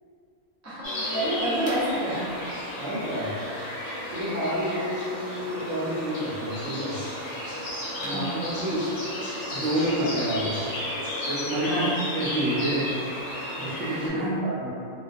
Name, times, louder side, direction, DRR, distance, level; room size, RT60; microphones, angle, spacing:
voice 1, 0.6-2.3 8.0-8.3 11.7-12.0 14.1-14.4, equal, 20° right, -10 dB, 0.4 m, -29 dB
sound 1, 0.8-14.1, equal, 60° left, 0.9 m, -33 dB
voice 2, 2.8-3.4 4.1-7.0 8.0-8.8 9.5-10.6 11.3-11.9 12.1-12.9 13.5-14.7, equal, 75° right, -6 dB, 0.9 m, -29 dB
2.3 x 2.2 x 2.5 m, 2.4 s
omnidirectional pair, 1.3 m